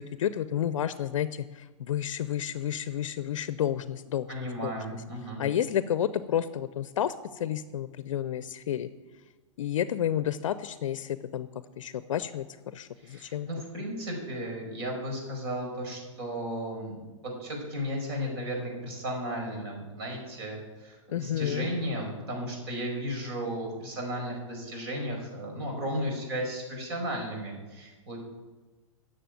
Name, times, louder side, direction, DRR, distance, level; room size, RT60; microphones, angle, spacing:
voice 1, 0.0-4.3 4.6-4.7 5.4-8.9 9.6-11.5 11.8-12.5 12.7-13.5 21.1-21.7, left 10 dB, 70° left, 14 dB, 0.6 m, -30 dB
voice 2, 4.3-5.4 13.0-16.9 17.2-28.2, equal, 50° right, 1 dB, 5.0 m, -34 dB
10.0 x 6.9 x 9.1 m, 1.2 s
hypercardioid pair, 130°, 17 cm